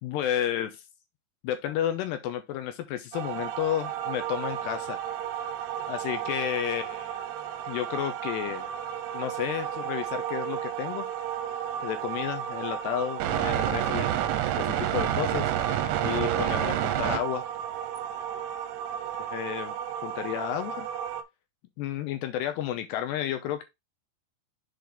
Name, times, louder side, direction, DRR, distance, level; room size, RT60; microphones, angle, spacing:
voice 1, 0.0-0.8 1.4-5.1 5.9-7.3 7.7-8.7 9.1-11.1 11.8-14.1 14.6-15.5 16.0-17.5 19.3-19.7 20.0-20.9 21.8-23.6, left 11 dB, 75° left, 2.6 m, -31 dB
sound 1, 3.1-21.2, right 10 dB, 90° right, 3.2 m, -31 dB
7.8 x 4.1 x 3.4 m
omnidirectional pair, 5.5 m